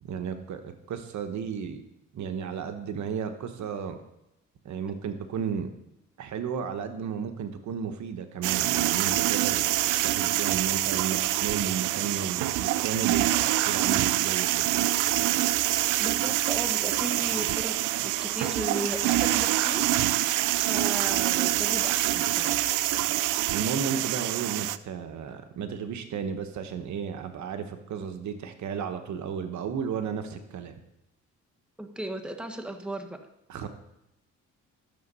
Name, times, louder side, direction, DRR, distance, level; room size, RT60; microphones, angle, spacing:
voice 1, 0.0-1.8 2.1-4.0 4.6-5.7 6.2-14.7 23.5-30.8 33.5-33.7, right 7 dB, 70° right, 8 dB, 1.2 m, -34 dB
sound 1, 8.4-24.8, right 15 dB, 85° right, 0.5 m, -26 dB
voice 2, 16.0-22.8 31.8-33.2, right 1 dB, 5° right, 5 dB, 1.3 m, -36 dB
13.0 x 7.0 x 5.5 m, 0.88 s
cardioid pair, 90°, 30 cm